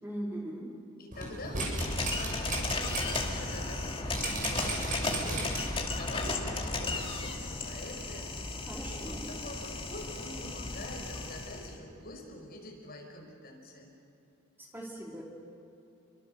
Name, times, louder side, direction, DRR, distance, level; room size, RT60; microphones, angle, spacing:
voice 1, 0.0-0.8 8.7-9.3 14.6-15.2, right 1 dB, 10° right, -1 dB, 2.6 m, -40 dB
voice 2, 1.0-1.7 2.0-5.5 5.9-8.5 8.8-13.9, left 1 dB, 45° left, 0 dB, 5.6 m, -45 dB
sound 1, 1.1-3.2 3.6-3.7 4.1-5.8 6.2-6.3, right 3 dB, 40° right, 7.0 m, -35 dB
sound 2, 1.8-11.7, left 2 dB, 25° left, 2.3 m, -35 dB
29.0 x 24.0 x 6.7 m, 2.8 s
head